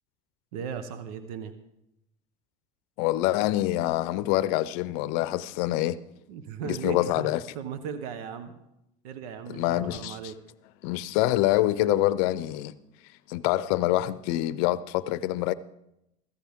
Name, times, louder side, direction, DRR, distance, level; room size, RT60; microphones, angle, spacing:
voice 1, 0.5-1.5 6.3-7.3 7.5-8.5 9.0-10.4, right 7 dB, 90° right, 1.1 m, -37 dB
voice 2, 3.0-6.0 6.6-7.4 9.5-10.2 10.8-12.7 13.3-15.5, left 15 dB, 80° left, 0.6 m, -26 dB
15.0 x 14.5 x 3.6 m
supercardioid pair, 105°, 19 cm